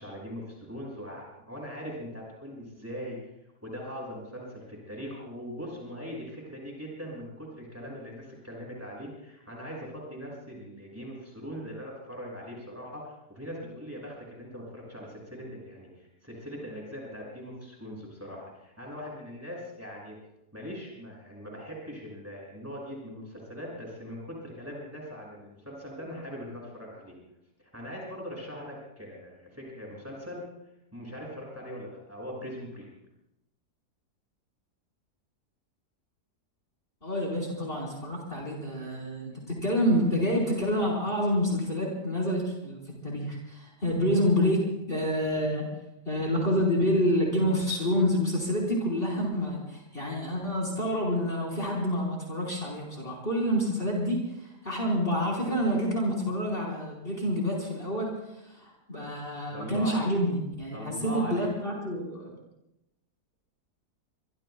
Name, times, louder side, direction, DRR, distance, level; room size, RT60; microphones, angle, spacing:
voice 1, 0.0-3.2 3.6-20.2 20.5-27.1 27.6-30.4 30.9-32.9 59.5-60.0 60.7-61.5, equal, 10° right, -3 dB, 6.4 m, -41 dB
voice 2, 37.0-45.7 46.0-58.1 58.5-62.3, equal, 35° left, -2 dB, 4.7 m, -28 dB
27.0 x 23.5 x 2.3 m, 0.88 s
omnidirectional pair, 1.8 m